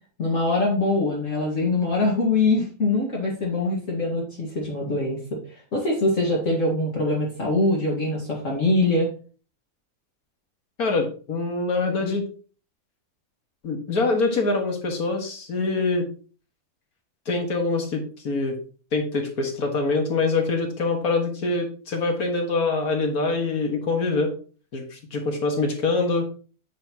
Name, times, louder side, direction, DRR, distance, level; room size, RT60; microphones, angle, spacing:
voice 1, 0.2-9.1, left 2 dB, 55° left, -3 dB, 2.0 m, -23 dB
voice 2, 10.8-12.3 13.6-16.1 17.3-18.6 18.9-24.3 24.7-26.2, left 3 dB, 70° left, 3 dB, 2.0 m, -24 dB
8.7 x 6.3 x 2.9 m, 0.39 s
omnidirectional pair, 1.6 m